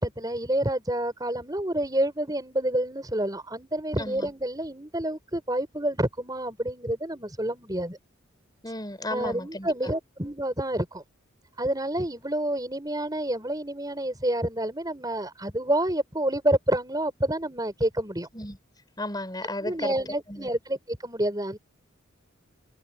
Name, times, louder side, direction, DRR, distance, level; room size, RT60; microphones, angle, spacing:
voice 1, 0.0-8.0 9.1-11.0 11.6-18.3 19.6-21.6, right 1 dB, 20° right, 5.2 m, -28 dB
voice 2, 4.0-4.3 8.6-9.9 18.3-18.6 19.0-19.9 20.3-20.5, left 1 dB, 20° left, 6.3 m, -34 dB
head